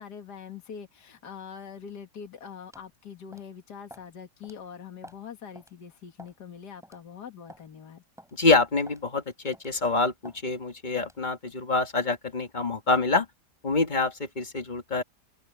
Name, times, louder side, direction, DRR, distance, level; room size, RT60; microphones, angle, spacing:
voice 1, 0.0-8.0, left 7 dB, 75° left, 2.4 m, -43 dB
sound 1, 2.7-2.9 3.3-3.5 3.9-4.1 4.4-4.6 5.0-5.3 5.5-5.7 6.2-6.4 6.8-7.0 7.5-7.7 8.2-8.3 8.9-9.0 9.5-9.8 10.2-10.4 11.0-11.2, equal, ahead, 7.6 m, -49 dB
voice 2, 8.3-13.3 13.6-15.0, left 3 dB, 30° left, 1.8 m, -26 dB
open air
omnidirectional pair, 1.8 m